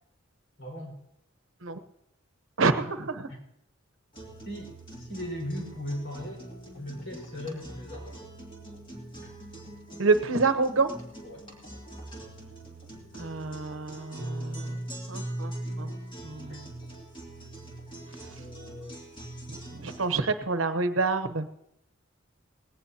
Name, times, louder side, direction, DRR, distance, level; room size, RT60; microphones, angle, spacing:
voice 1, 0.6-1.0 3.3-3.4 4.4-6.4 6.7-8.3 9.2-9.3 11.2-11.5 16.5-16.6 18.3-19.0 20.1-20.4, left 1 dB, 65° left, 1 dB, 5.1 m, -39 dB
voice 2, 2.6-3.3 10.0-10.9 13.1-14.8 15.1-15.5 15.8-15.9 16.2-16.6 19.8-21.5, right 3 dB, 70° right, 10 dB, 1.0 m, -27 dB
sound 1, 4.1-20.1, right 1 dB, 25° left, 2.7 m, -41 dB
19.5 x 17.0 x 2.9 m, 0.78 s
head